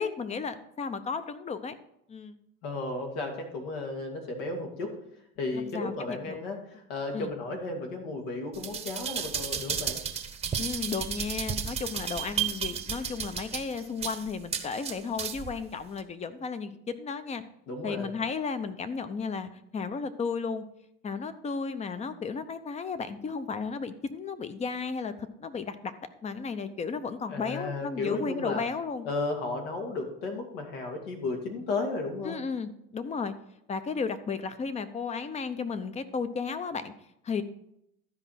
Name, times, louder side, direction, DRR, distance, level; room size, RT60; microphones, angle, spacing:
voice 1, 0.0-1.8 2.1-2.3 5.5-6.4 7.1-7.3 10.6-17.4 17.8-20.6 21.0-25.9 26.2-29.1 32.2-33.3 33.7-36.9 37.2-37.4, left 5 dB, 25° left, 12 dB, 0.7 m, -34 dB
voice 2, 2.6-4.9 5.4-10.0 17.7-18.1 27.3-28.6 29.0-32.4, left 3 dB, 80° left, 2 dB, 2.5 m, -34 dB
sound 1, 8.5-15.5 16.0-16.1, right 7 dB, 20° right, 0.9 m, -33 dB
12.5 x 5.0 x 5.7 m, 0.77 s
supercardioid pair, 125°, 29 cm